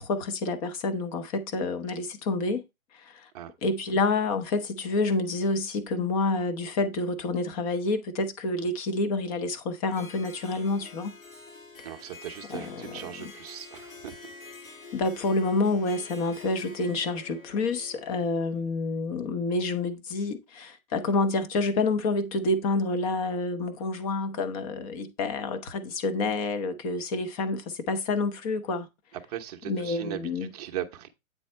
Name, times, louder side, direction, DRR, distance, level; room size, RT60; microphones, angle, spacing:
voice 1, 0.0-2.6 2.9-3.3 3.6-11.2 12.5-13.3 14.9-28.9 29.7-30.5, left 3 dB, 25° left, 0.9 m, -28 dB
Harp, 9.9-18.6, left 4 dB, 75° left, 5.4 m, -47 dB
voice 2, 11.8-14.2 29.3-31.1, right 11 dB, 30° right, 0.8 m, -38 dB
8.6 x 4.1 x 4.3 m
hypercardioid pair, 150°, 41 cm